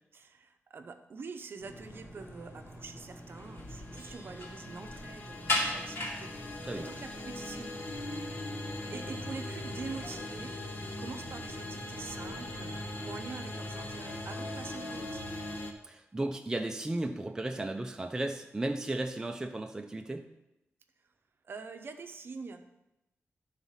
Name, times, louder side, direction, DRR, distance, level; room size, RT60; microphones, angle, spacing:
voice 1, 0.1-6.3 6.8-8.1 8.9-15.4 21.4-22.7, right 4 dB, 55° right, 7 dB, 0.7 m, -45 dB
sound 1, 1.6-13.2, equal, 80° left, 2.0 m, -49 dB
sound 2, 3.3-10.5, left 1 dB, 65° left, 2.5 m, -39 dB
sound 3, 3.5-15.7, left 1 dB, 40° left, 0.9 m, -41 dB
voice 2, 15.8-20.2, right 2 dB, 15° right, 4 dB, 0.5 m, -35 dB
11.0 x 4.0 x 5.6 m, 0.93 s
wide cardioid pair, 140°, 5 cm